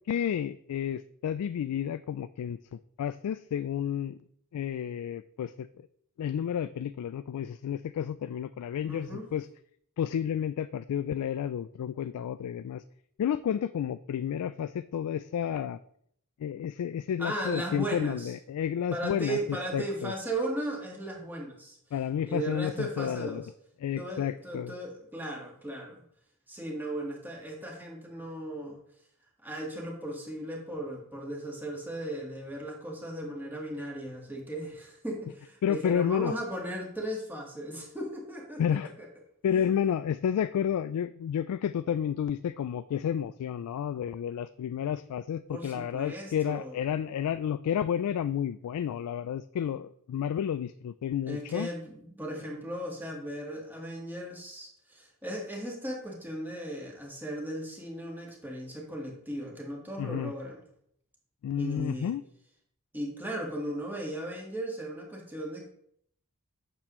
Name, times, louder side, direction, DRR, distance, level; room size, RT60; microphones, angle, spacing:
voice 1, 0.1-4.2 4.5-5.7 6.2-9.5 10.0-12.8 13.2-15.8 16.4-20.1 21.9-23.4 23.8-24.7 35.6-36.3 38.6-38.9 39.4-51.7 60.0-60.3 61.4-62.2, left 9 dB, 90° left, 13 dB, 0.3 m, -31 dB
voice 2, 8.8-9.3 17.2-18.3 18.9-21.8 22.2-23.4 24.0-26.0 26.5-28.8 29.4-39.1 39.5-39.7 45.5-46.8 51.3-60.6 61.6-62.1 62.9-65.7, right 1 dB, 10° right, -1 dB, 1.7 m, -37 dB
8.7 x 6.7 x 3.1 m, 0.68 s
head